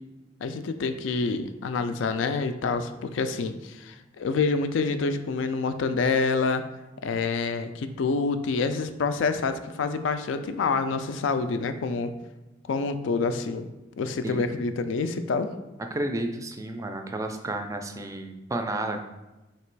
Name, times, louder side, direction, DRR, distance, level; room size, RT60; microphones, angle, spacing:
voice 1, 0.4-6.6 7.0-12.1 12.7-13.7 14.0-15.5, left 4 dB, 75° left, 9 dB, 0.3 m, -27 dB
voice 2, 15.9-19.0, right 1 dB, 15° right, 5 dB, 0.3 m, -31 dB
3.2 x 2.9 x 4.5 m, 1.0 s
head